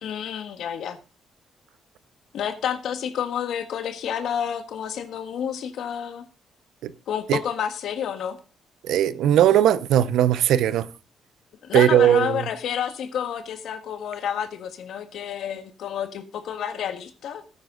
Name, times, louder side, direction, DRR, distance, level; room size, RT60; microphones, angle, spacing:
voice 1, 0.0-1.0 2.3-6.2 7.1-8.4 11.6-17.4, left 8 dB, 75° left, 1.6 m, -29 dB
voice 2, 8.9-10.9 11.7-12.4, right 10 dB, 80° right, 0.7 m, -18 dB
13.5 x 9.5 x 3.8 m
cardioid pair, 90°, 0 cm